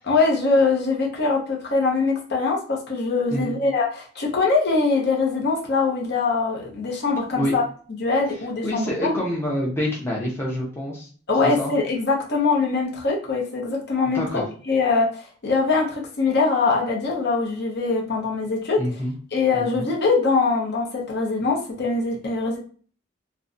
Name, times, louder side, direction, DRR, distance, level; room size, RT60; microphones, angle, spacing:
voice 1, 0.1-7.6 8.0-9.1 11.3-18.8 19.3-22.6, left 4 dB, 55° left, -1 dB, 0.7 m, -22 dB
voice 2, 8.6-11.1 11.4-11.7 14.1-14.4 18.8-19.1 19.5-19.9, left 1 dB, 10° left, -5 dB, 0.6 m, -27 dB
2.5 x 2.1 x 2.5 m, 0.43 s
head